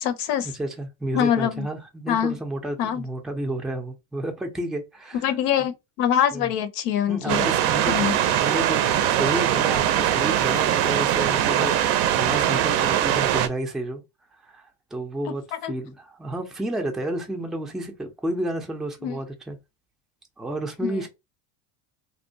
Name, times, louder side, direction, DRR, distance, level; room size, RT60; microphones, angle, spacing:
voice 1, 0.0-0.5 1.1-1.7 2.1-2.4 2.8-3.0 5.2-7.5 7.9-8.2 15.3-15.4 15.6-15.7 19.0-19.2 20.8-21.1, left 9 dB, 75° left, 0.6 m, -24 dB
voice 2, 0.5-5.7 6.3-6.5 7.1-14.0 14.5-19.6 20.4-21.1, right 1 dB, ahead, 0.4 m, -31 dB
sound 1, 7.3-13.5, right 11 dB, 55° right, 0.5 m, -22 dB
2.7 x 2.1 x 2.6 m
supercardioid pair, 90°, 49 cm